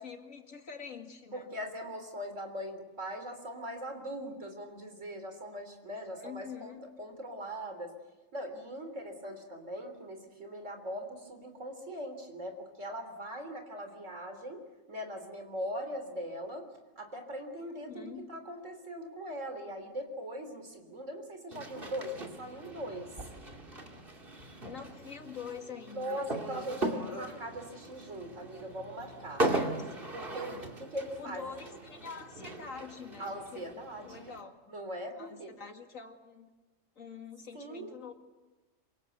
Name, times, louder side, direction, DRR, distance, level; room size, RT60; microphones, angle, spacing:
voice 1, 0.0-1.6 6.2-6.9 17.6-18.3 24.5-27.0 29.5-29.9 30.5-30.7 31.2-34.5 35.2-36.5 37.0-38.1, left 6 dB, 90° left, 4 dB, 2.6 m, -46 dB
voice 2, 1.3-7.9 8.3-14.6 14.9-16.7 17.0-23.1 25.9-29.5 30.1-31.5 33.2-34.3 34.7-35.6 37.5-37.9, equal, 70° right, 6 dB, 3.9 m, -41 dB
sound 1, 21.5-34.4, right 2 dB, 45° right, 2.8 m, -38 dB
26.5 x 24.5 x 8.1 m, 1.2 s
omnidirectional pair, 1.3 m